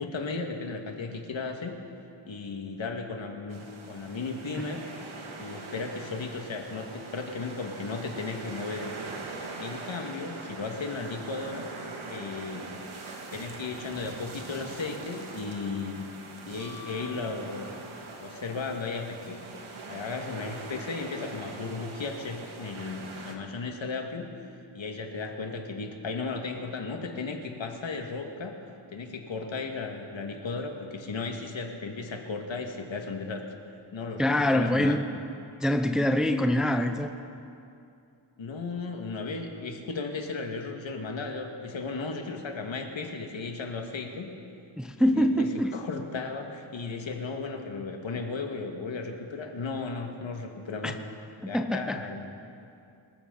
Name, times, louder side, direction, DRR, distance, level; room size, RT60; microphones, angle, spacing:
voice 1, 0.0-1.8 2.3-4.9 5.4-9.0 9.6-11.7 12.1-12.8 13.3-16.1 16.5-17.7 18.2-19.4 19.9-24.3 24.7-28.6 28.9-33.5 33.9-35.0 38.4-44.3 45.0-51.0 51.5-52.3, left 4 dB, 70° left, 3 dB, 1.8 m, -35 dB
sound 1, 3.5-23.3, right 3 dB, 85° right, 1.9 m, -42 dB
Piano, 16.6-18.2 20.5-20.6, left 5 dB, 35° right, 1.9 m, -49 dB
voice 2, 34.2-35.1 35.6-37.1 44.8-45.7 50.8-50.9 51.4-52.1, left 1 dB, ahead, 6 dB, 0.7 m, -25 dB
26.0 x 14.5 x 3.9 m, 2.6 s
wide cardioid pair, 120°, 47 cm